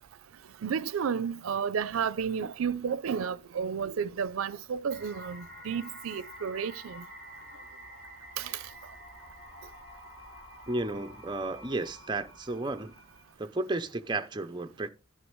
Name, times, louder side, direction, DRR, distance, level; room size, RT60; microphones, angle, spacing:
voice 1, 0.6-7.0 8.4-8.7, right 7 dB, 85° right, 0.4 m, -32 dB
sound 1, 4.9-13.3, equal, 15° left, 6.8 m, -49 dB
voice 2, 10.7-12.9 13.4-14.9, right 2 dB, 20° right, 0.5 m, -33 dB
10.5 x 9.3 x 3.1 m
head